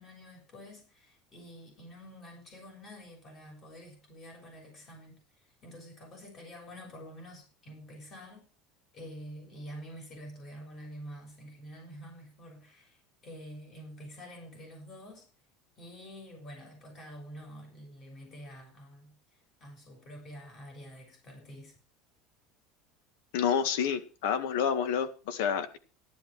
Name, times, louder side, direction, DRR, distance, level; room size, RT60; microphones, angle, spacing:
voice 1, 0.0-5.2 5.6-8.4 8.9-15.3 15.8-19.1 19.6-21.7, equal, 30° left, 3 dB, 6.4 m, -48 dB
voice 2, 23.3-25.8, left 7 dB, 80° left, 11 dB, 1.9 m, -29 dB
14.0 x 11.5 x 4.7 m, 0.34 s
cardioid pair, 165°, 0 cm